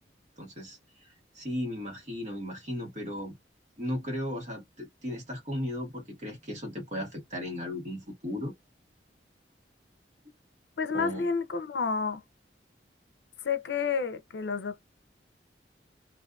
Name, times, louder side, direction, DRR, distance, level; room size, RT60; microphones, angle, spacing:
voice 1, 0.4-0.8 1.3-3.4 3.8-8.5 10.9-11.3, left 1 dB, 45° right, 1.3 m, -36 dB
voice 2, 10.8-12.2 13.4-14.8, left 5 dB, 80° left, 0.5 m, -30 dB
2.6 x 2.4 x 2.3 m
head